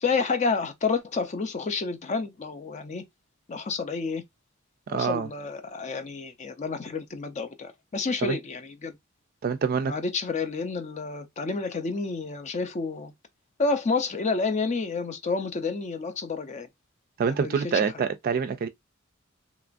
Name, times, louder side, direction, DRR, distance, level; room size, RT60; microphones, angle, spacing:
voice 1, 0.0-3.0 3.5-4.2 4.9-8.9 9.9-13.1 13.6-16.7 17.3-17.6, left 4 dB, 35° left, 0.4 m, -29 dB
voice 2, 4.9-5.3 8.2-8.4 9.4-9.9 17.2-18.7, right 6 dB, 45° right, 0.3 m, -26 dB
2.9 x 2.4 x 2.5 m
head